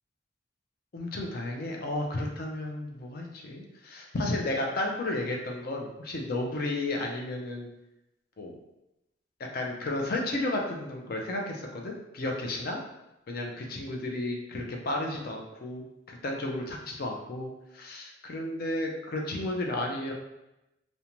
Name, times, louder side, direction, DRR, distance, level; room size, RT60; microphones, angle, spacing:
voice 1, 0.9-7.7 8.4-8.5 9.5-12.8 13.3-20.1, left 2 dB, 50° left, 1 dB, 0.5 m, -33 dB
2.5 x 2.1 x 2.9 m, 0.91 s
head